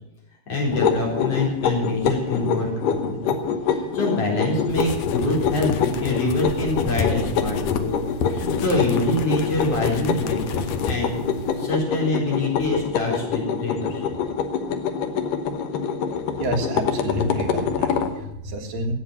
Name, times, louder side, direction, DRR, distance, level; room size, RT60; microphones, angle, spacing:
voice 1, 0.5-3.4 3.7-7.9 8.3-11.1 11.6-14.0, left 2 dB, 45° left, -2 dB, 5.2 m, -25 dB
sound 1, 0.7-18.1, left 6 dB, 85° left, 2.8 m, -26 dB
sound 2, 4.7-11.7, left 5 dB, 65° left, 1.9 m, -31 dB
voice 2, 16.4-18.9, right 1 dB, 80° right, 3 dB, 3.4 m, -28 dB
13.5 x 8.8 x 9.8 m, 0.86 s
omnidirectional pair, 3.8 m